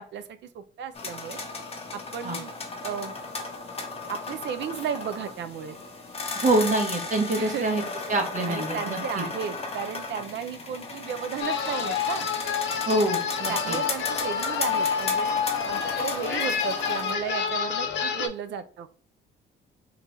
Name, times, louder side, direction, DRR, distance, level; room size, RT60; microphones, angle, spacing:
voice 1, 0.0-1.4 1.9-2.5 2.8-3.1 4.1-5.8 7.4-7.7 8.4-12.3 13.5-15.3 15.7-18.9, right 8 dB, 65° right, 11 dB, 0.5 m, -34 dB
sound 1, 0.9-17.1, left 3 dB, 30° left, 0.8 m, -35 dB
voice 2, 6.3-7.8 8.1-9.2 12.8-13.8, right 2 dB, 40° right, 2 dB, 1.1 m, -25 dB
sound 2, 11.4-18.3, left 7 dB, 65° left, 0.6 m, -28 dB
3.9 x 2.3 x 3.0 m, 0.42 s
cardioid pair, 90°, 20 cm